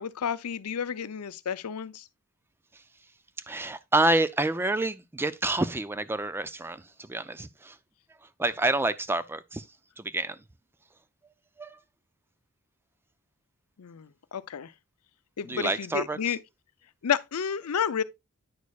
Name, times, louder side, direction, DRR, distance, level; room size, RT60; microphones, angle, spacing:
voice 1, 0.0-2.0 13.8-14.7 15.4-16.4 17.0-18.0, left 7 dB, 90° left, 0.5 m, -31 dB
voice 2, 3.5-7.8 8.4-9.7 10.0-10.4 11.6-11.8 15.4-16.4, right 2 dB, 10° right, 0.4 m, -28 dB
9.4 x 6.4 x 2.3 m
head